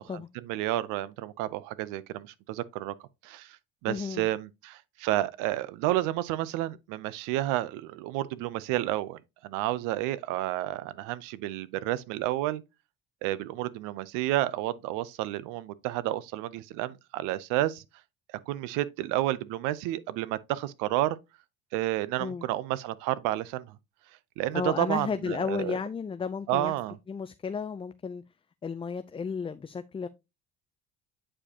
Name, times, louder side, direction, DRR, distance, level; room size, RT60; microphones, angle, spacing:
voice 1, 0.1-2.9 3.2-3.6 3.8-12.6 13.2-17.8 18.5-21.2 21.7-23.8 24.4-25.8 26.5-27.0, right 15 dB, 90° right, 0.6 m, -30 dB
voice 2, 3.9-4.3 22.2-22.5 24.5-26.7 27.1-28.2 28.6-30.1, left 5 dB, 20° left, 0.4 m, -33 dB
8.5 x 5.0 x 2.8 m
cardioid pair, 95°, 31 cm